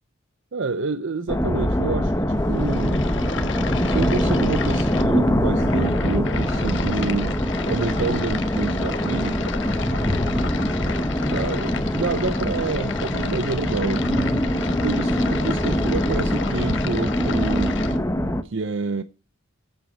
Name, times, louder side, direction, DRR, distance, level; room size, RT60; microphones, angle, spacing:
voice 1, 0.5-3.0 3.8-9.5 11.2-14.5 14.8-17.8 18.4-19.0, right 4 dB, 60° right, 0.6 m, -28 dB
sound 1, 1.3-18.4, equal, 15° left, 0.8 m, -23 dB
sound 2, 2.4-18.0, left 5 dB, 60° left, 1.2 m, -34 dB
9.0 x 8.1 x 6.2 m
head